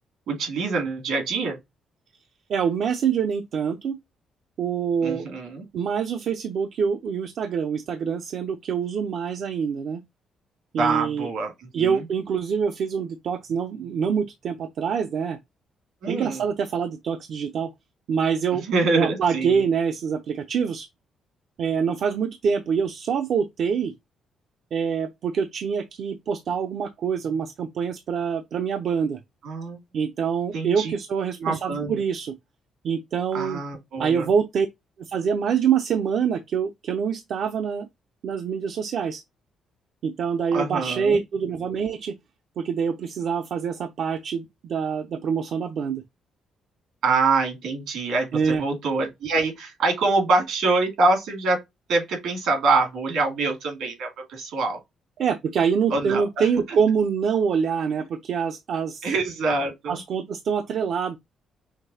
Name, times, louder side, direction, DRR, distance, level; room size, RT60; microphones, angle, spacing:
voice 1, 0.3-1.6 5.0-5.6 10.8-11.5 11.8-12.0 16.0-16.4 18.5-19.6 29.4-29.8 30.5-30.9 31.4-31.9 33.3-34.3 40.5-41.2 47.0-51.6 51.9-54.8 55.9-56.8 59.0-60.0, right 3 dB, 80° right, 2.3 m, -25 dB
voice 2, 2.5-4.0 4.6-5.3 5.7-10.0 10.7-11.3 11.7-15.4 16.1-17.7 18.1-18.6 18.9-20.9 21.6-23.9 24.7-29.2 29.9-32.3 32.8-33.6 34.0-34.7 35.0-37.9 38.2-39.2 40.0-42.1 42.6-46.0 48.3-48.6 55.2-59.1 59.9-61.2, right 6 dB, 65° right, 0.5 m, -25 dB
5.9 x 2.7 x 2.7 m
cardioid pair, 90°, 0 cm